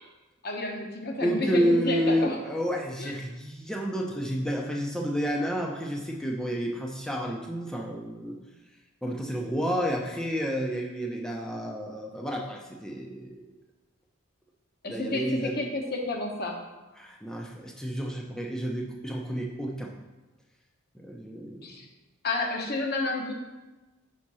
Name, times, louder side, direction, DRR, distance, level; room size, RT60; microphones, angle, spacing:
voice 1, 0.4-2.4 3.0-3.1 14.8-16.6 21.6-21.8 22.2-23.3, left 2 dB, 45° left, 2 dB, 1.0 m, -30 dB
voice 2, 1.2-8.4 9.0-13.5 14.8-15.7 17.0-19.9 21.0-21.7, equal, 5° left, -1 dB, 0.7 m, -30 dB
5.8 x 4.3 x 6.2 m, 1.1 s
head